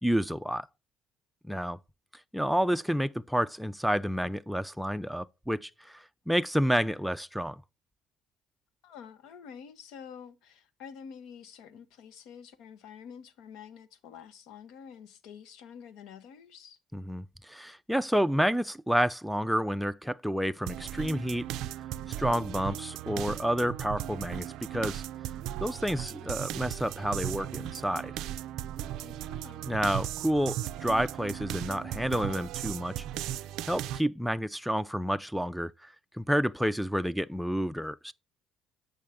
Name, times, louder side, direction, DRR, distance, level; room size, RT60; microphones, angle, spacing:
voice 1, 0.0-0.7 1.4-1.8 2.3-7.6 16.9-21.5 22.2-25.0 25.6-28.1 29.7-33.0 33.7-38.1, equal, ahead, 0.4 m, -29 dB
voice 2, 8.8-16.8 29.0-29.7, left 7 dB, 80° left, 1.0 m, -48 dB
sound 1, 20.7-34.0, right 12 dB, 75° right, 0.3 m, -37 dB
7.4 x 5.4 x 3.5 m
supercardioid pair, 75°, 0 cm